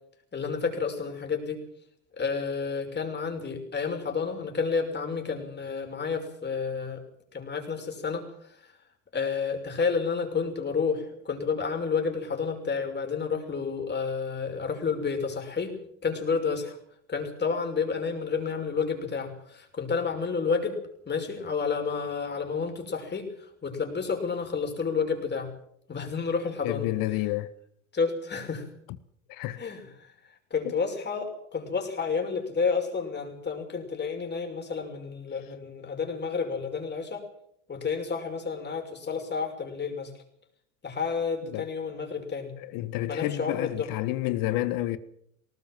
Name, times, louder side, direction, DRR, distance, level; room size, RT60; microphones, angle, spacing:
voice 1, 0.3-1.6 2.2-7.0 7.3-8.7 9.1-16.8 17.1-25.5 25.9-26.9 27.1-27.2 27.9-28.7 29.6-30.1 30.5-37.3 37.7-40.1 40.8-42.5 43.1-43.9, left 5 dB, 30° left, 6.1 m, -30 dB
voice 2, 26.6-27.5 29.3-29.6 41.5-41.6 42.7-45.0, left 16 dB, 60° left, 1.6 m, -29 dB
19.5 x 18.5 x 7.7 m
hypercardioid pair, 85°, 37 cm